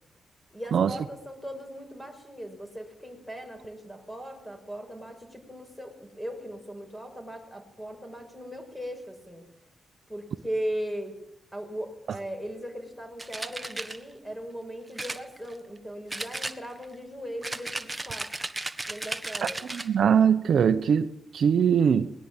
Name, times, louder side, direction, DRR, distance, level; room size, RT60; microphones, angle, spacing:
voice 1, 0.5-9.4 10.1-11.2 11.5-18.3 18.9-19.6, equal, 5° left, 6.1 m, -38 dB
sound 1, 13.2-14.0 15.0-15.8 16.1-16.9 17.4-19.9, right 2 dB, 15° right, 1.5 m, -35 dB
voice 2, 19.6-22.1, right 7 dB, 60° right, 1.0 m, -22 dB
21.5 x 19.5 x 9.0 m
wide cardioid pair, 125°, 0 cm